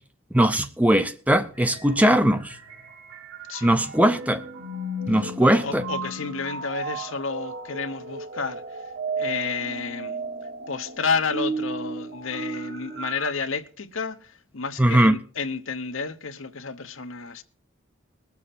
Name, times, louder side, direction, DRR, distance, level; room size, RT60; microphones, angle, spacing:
voice 1, 0.3-2.6 3.6-4.4 5.1-5.9 14.8-15.1, right 1 dB, 5° right, 0.5 m, -20 dB
sound 1, 1.5-13.3, right 3 dB, 65° right, 2.0 m, -34 dB
voice 2, 5.4-8.8 9.2-10.2 10.7-17.4, left 5 dB, 75° left, 1.0 m, -31 dB
21.0 x 7.2 x 4.3 m
head